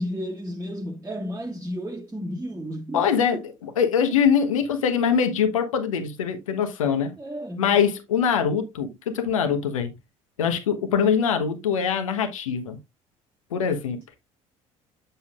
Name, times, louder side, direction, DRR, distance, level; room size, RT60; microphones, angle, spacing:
voice 1, 0.0-3.4 7.2-7.7, equal, 15° right, 1.2 m, -32 dB
voice 2, 2.9-7.1 7.6-9.9 10.4-12.8 13.5-14.0, left 7 dB, 80° left, 1.1 m, -23 dB
7.7 x 6.8 x 2.4 m
figure-of-eight pair, 60°, 17 cm